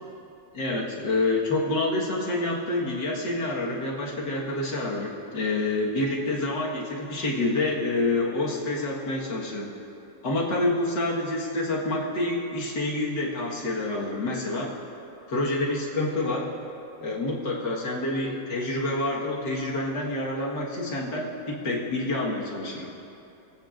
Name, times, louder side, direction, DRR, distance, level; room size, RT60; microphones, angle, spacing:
voice 1, 0.5-9.7 10.2-14.7 15.3-16.5 17.0-22.9, left 2 dB, 70° left, -4 dB, 2.3 m, -27 dB
25.5 x 8.8 x 2.6 m, 2.8 s
omnidirectional pair, 1.9 m